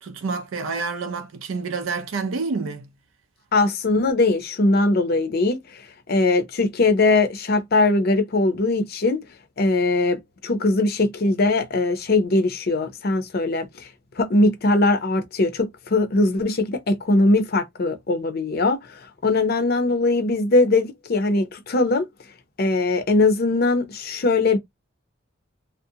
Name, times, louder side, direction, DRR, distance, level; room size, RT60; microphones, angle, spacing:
voice 1, 0.0-2.9, right 4 dB, 75° right, 0.4 m, -28 dB
voice 2, 3.5-9.2 9.6-13.9 14.2-22.1 22.6-24.6, left 2 dB, 50° left, 0.6 m, -21 dB
2.5 x 2.1 x 2.7 m
head